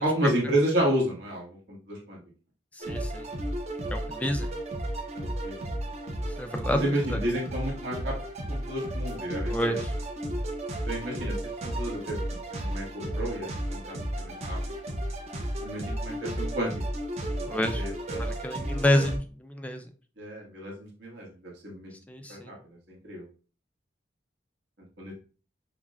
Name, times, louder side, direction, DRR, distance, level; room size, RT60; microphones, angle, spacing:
voice 1, 0.0-2.2 5.2-5.5 6.7-8.1 8.5-9.8 10.9-11.3 11.6-14.6 15.6-16.7 17.3-18.3 20.2-21.9 22.3-23.2 25.0-25.1, right 1 dB, 80° right, -2 dB, 1.4 m, -31 dB
voice 2, 2.8-3.3 3.9-4.5 6.4-6.9 9.5-9.9 17.5-17.8 18.2-19.8 22.1-22.5, left 1 dB, 10° left, 6 dB, 0.4 m, -28 dB
sound 1, 2.8-19.2, right 1 dB, 35° right, 0.6 m, -33 dB
5.5 x 2.1 x 2.4 m, 0.37 s
head